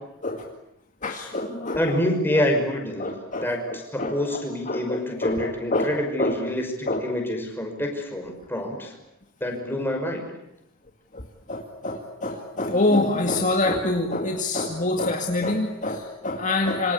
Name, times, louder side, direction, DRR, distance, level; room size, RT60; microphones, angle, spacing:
voice 1, 1.0-1.8 2.3-2.4 3.0-5.9 6.2-6.4 6.9-7.0 11.1-16.9, left 2 dB, 35° left, 2 dB, 2.2 m, -26 dB
voice 2, 1.8-3.1 3.4-8.9 9.4-10.3, left 1 dB, 10° left, 3 dB, 5.9 m, -27 dB
27.0 x 26.0 x 8.5 m, 0.83 s
head